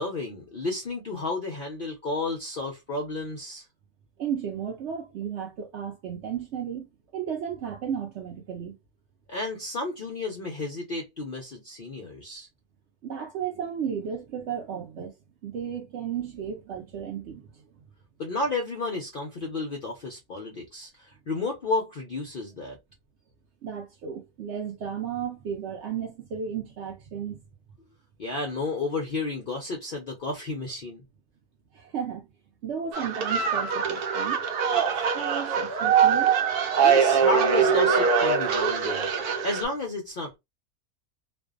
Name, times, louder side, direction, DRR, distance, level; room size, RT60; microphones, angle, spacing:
voice 1, 0.0-3.6 9.3-12.5 18.2-22.8 28.2-31.0 36.8-39.1 39.4-40.4, left 3 dB, 65° left, 0.5 m, -32 dB
voice 2, 4.2-8.7 13.0-15.1 15.4-17.8 23.6-27.4 31.7-32.3 32.6-36.3, right 8 dB, 65° right, 0.7 m, -34 dB
sound 1, 32.9-39.6, right 6 dB, 85° right, 1.1 m, -23 dB
2.5 x 2.2 x 2.3 m
omnidirectional pair, 1.5 m